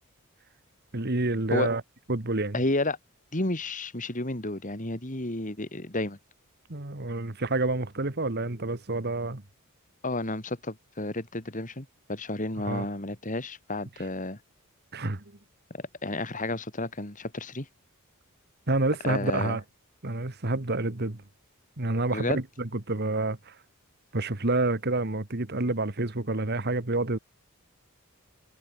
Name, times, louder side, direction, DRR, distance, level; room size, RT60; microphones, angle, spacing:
voice 1, 0.9-1.8 2.1-2.5 6.7-9.4 12.6-12.9 14.9-15.2 18.7-19.6 20.0-21.2 21.8-23.5 24.1-27.2, right 2 dB, 45° right, 1.7 m, -28 dB
voice 2, 2.5-3.0 3.3-6.2 10.0-14.4 15.7-17.7 19.0-19.6 22.1-22.4, left 2 dB, 35° left, 2.9 m, -31 dB
head